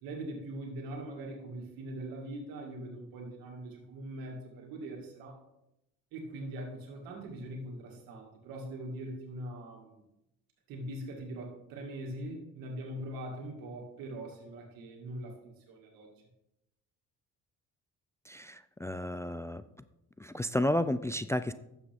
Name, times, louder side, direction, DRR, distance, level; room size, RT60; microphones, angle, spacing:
voice 1, 0.0-5.4 6.1-10.0 10.7-16.1, right 1 dB, 85° right, 1 dB, 2.1 m, -42 dB
voice 2, 18.3-19.6 20.2-21.5, left 1 dB, 10° left, 12 dB, 0.3 m, -32 dB
11.5 x 7.3 x 3.5 m, 0.86 s
supercardioid pair, 75°, 34 cm